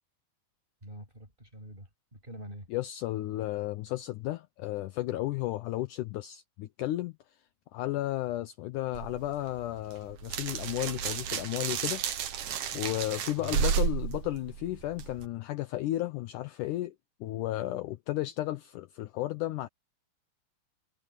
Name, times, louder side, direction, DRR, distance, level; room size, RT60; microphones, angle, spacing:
voice 1, 0.8-2.7 13.4-13.6, right 1 dB, 15° right, 7.8 m, -45 dB
voice 2, 2.7-7.2 7.7-12.0 12.7-17.0 17.2-19.7, left 15 dB, 75° left, 2.1 m, -33 dB
sound 1, 8.9-15.3, right 7 dB, 65° right, 3.1 m, -33 dB
omnidirectional pair, 4.0 m